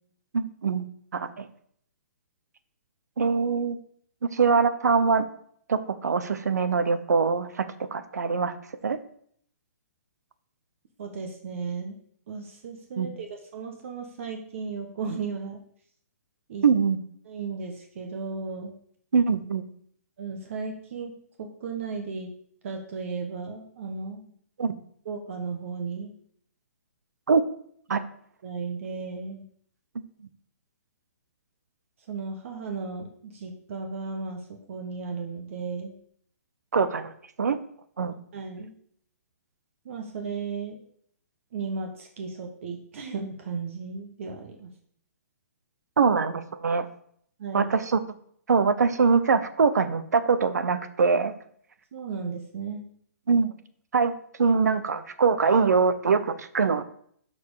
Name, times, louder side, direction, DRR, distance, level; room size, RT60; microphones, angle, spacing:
voice 1, 0.3-0.8 1.1-1.5 3.2-3.8 4.3-5.3 5.7-8.5 8.8-9.0 13.0-13.1 16.6-17.0 19.1-19.6 24.6-24.7 27.3-27.4 27.9-28.0 36.7-37.1 37.4-37.6 38.0-38.1 46.0-46.9 47.5-48.0 48.5-51.3 53.3-53.5 53.9-54.1 54.4-56.8, right 5 dB, 90° right, 12 dB, 0.9 m, -23 dB
voice 2, 11.0-11.9 12.3-15.6 16.5-16.7 17.2-18.7 20.2-21.1 21.4-22.3 22.6-24.3 25.0-26.1 27.9-28.0 28.4-29.4 32.1-34.4 34.7-35.9 38.3-38.7 39.8-40.8 41.5-44.7 47.4-47.7 51.9-52.8, right 5 dB, 50° right, 3 dB, 1.3 m, -35 dB
12.5 x 4.4 x 4.9 m, 0.64 s
hypercardioid pair, 155°, 9 cm